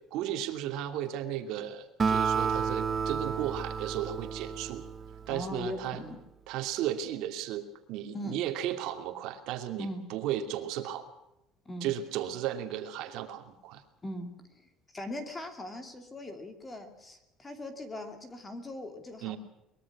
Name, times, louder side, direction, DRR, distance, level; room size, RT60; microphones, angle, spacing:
voice 1, 0.1-4.8 5.3-6.0 6.5-11.1 11.8-13.8 19.2-19.4, right 11 dB, 60° right, 6 dB, 2.6 m, -35 dB
Acoustic guitar, 2.0-5.6, right 6 dB, 20° right, 0.8 m, -31 dB
voice 2, 5.3-6.2 8.1-8.4 9.8-10.0 11.7-11.9 14.0-19.4, left 1 dB, 15° left, 7 dB, 2.6 m, -40 dB
23.0 x 21.5 x 6.1 m, 0.89 s
cardioid pair, 175°, 0 cm